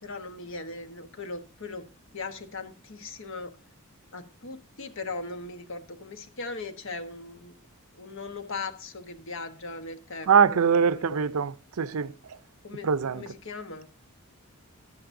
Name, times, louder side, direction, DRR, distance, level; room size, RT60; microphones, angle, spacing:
voice 1, 0.0-1.8 2.1-3.5 4.1-7.6 8.0-11.3 12.6-13.9, left 3 dB, 60° left, 1.2 m, -39 dB
voice 2, 10.3-12.1 12.8-13.2, right 6 dB, 75° right, 0.5 m, -23 dB
13.0 x 10.5 x 2.6 m
head